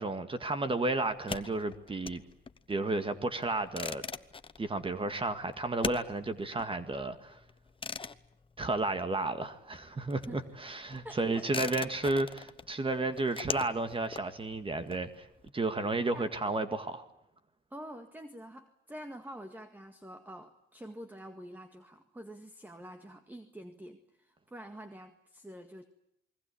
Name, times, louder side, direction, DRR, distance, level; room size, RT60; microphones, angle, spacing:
voice 1, 0.0-2.2 2.7-4.0 4.6-7.4 8.6-15.3 15.5-17.0, right 2 dB, 25° right, 10 dB, 1.9 m, -32 dB
sound 1, 1.1-9.4 9.7-15.5, left 5 dB, 25° left, 1.0 m, -42 dB
voice 2, 11.0-11.5 11.7-11.9 16.1-16.3 17.7-25.8, equal, 10° right, 7 dB, 1.9 m, -47 dB
28.5 x 21.5 x 8.6 m, 0.77 s
cardioid pair, 90°, 20 cm